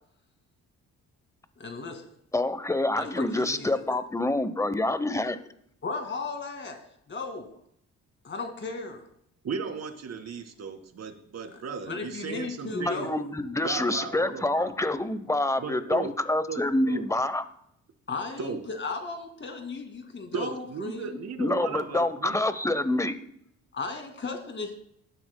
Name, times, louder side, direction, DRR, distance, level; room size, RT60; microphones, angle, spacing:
voice 1, 1.6-2.1 3.0-3.7 5.8-6.8 7.1-7.5 8.2-9.1 11.5-11.6 11.9-13.1 18.1-21.2 23.7-24.7, left 4 dB, 40° left, 5 dB, 2.2 m, -35 dB
voice 2, 2.3-5.4 12.7-17.4 21.4-23.2, left 2 dB, 10° left, 13 dB, 0.8 m, -27 dB
voice 3, 9.4-13.1 13.6-14.7 15.6-16.1 16.5-17.0 18.4-18.6 20.3-22.4, right 5 dB, 60° right, 6 dB, 1.9 m, -36 dB
17.5 x 9.8 x 2.2 m, 0.70 s
cardioid pair, 90°, 30 cm